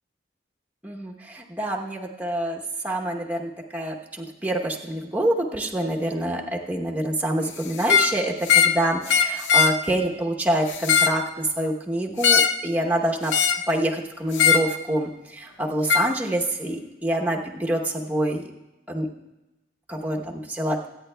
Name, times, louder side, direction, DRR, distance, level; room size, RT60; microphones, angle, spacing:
voice 1, 0.8-13.3 13.7-18.5 18.9-19.1 19.9-20.8, right 1 dB, 10° right, 0 dB, 0.9 m, -26 dB
sound 1, 7.8-8.1 8.5-8.8 9.1-9.8 10.7-11.2 12.2-12.6 13.3-13.7 14.3-14.7 15.9-16.1, left 7 dB, 75° left, 0.7 m, -19 dB
23.5 x 9.3 x 2.2 m, 1.0 s
head